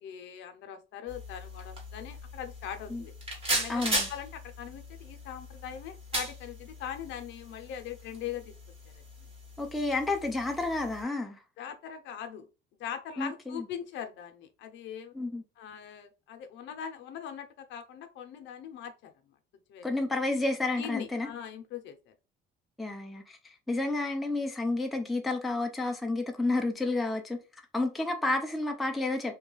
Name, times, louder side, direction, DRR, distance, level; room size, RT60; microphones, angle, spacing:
voice 1, 0.0-3.1 3.5-8.5 9.2-9.3 11.6-12.5 12.8-15.1 15.6-19.3 19.7-20.1 20.7-22.1, left 9 dB, 65° left, 0.6 m, -41 dB
sound 1, 1.1-11.0, right 1 dB, 25° right, 1.2 m, -38 dB
voice 2, 3.7-4.0 9.6-11.4 13.2-13.6 15.1-15.4 19.8-21.3 22.8-27.4 27.7-29.3, left 2 dB, ahead, 0.3 m, -30 dB
2.8 x 2.3 x 3.8 m
cardioid pair, 150°, 21 cm